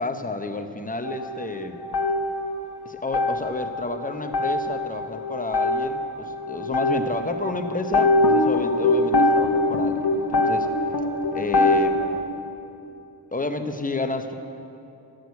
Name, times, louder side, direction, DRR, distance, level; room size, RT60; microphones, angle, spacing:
voice 1, 0.0-1.8 2.8-10.7 11.3-12.0 13.3-14.3, left 2 dB, 20° left, 7 dB, 0.8 m, -30 dB
sound 1, 1.0-2.8 3.1-12.2, left 2 dB, 60° left, 1.1 m, -23 dB
12.5 x 6.5 x 8.3 m, 2.8 s
wide cardioid pair, 85°, 44 cm